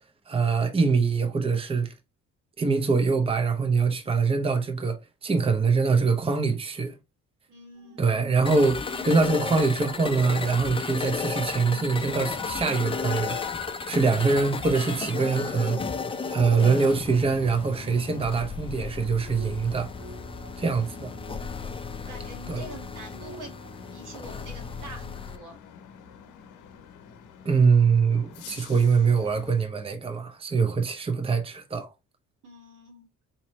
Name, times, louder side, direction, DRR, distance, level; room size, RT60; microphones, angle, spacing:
voice 1, 0.3-1.9 2.6-6.9 8.0-13.4 13.8-15.8 16.3-19.9 20.6-21.1 22.5-22.6 27.4-31.9, right 4 dB, 20° right, 0.7 m, -24 dB
voice 2, 7.5-8.0 20.6-21.4 22.0-23.5 23.9-25.6 32.4-33.1, right 1 dB, 80° right, 1.8 m, -45 dB
sound 1, 7.7-24.2, right 1 dB, 40° right, 1.6 m, -50 dB
sound 2, 8.5-25.4, left 4 dB, 20° left, 0.4 m, -34 dB
sound 3, 10.3-29.6, left 9 dB, 85° left, 0.8 m, -46 dB
4.1 x 2.8 x 3.1 m
cardioid pair, 90°, 30 cm